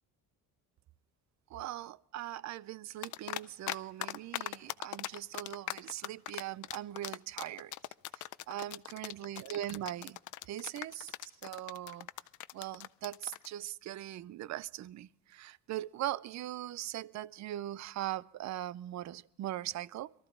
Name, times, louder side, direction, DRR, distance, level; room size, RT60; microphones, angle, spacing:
voice 1, 1.5-7.7 8.1-10.2 10.5-12.1 12.5-20.1, right 13 dB, 55° right, 0.5 m, -40 dB
sound 1, 3.0-3.8 4.0-13.5, left 15 dB, 60° left, 0.5 m, -39 dB
22.5 x 13.5 x 3.6 m
cardioid pair, 120°, 34 cm